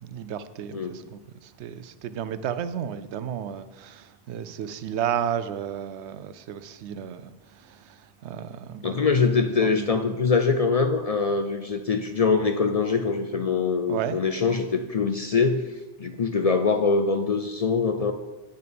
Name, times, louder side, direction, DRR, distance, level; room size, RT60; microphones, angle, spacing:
voice 1, 0.0-10.0 13.9-14.2, right 9 dB, 90° right, 0.9 m, -33 dB
voice 2, 8.8-15.6 16.0-18.1, left 4 dB, 50° left, 0.4 m, -23 dB
9.0 x 6.7 x 5.1 m
omnidirectional pair, 1.1 m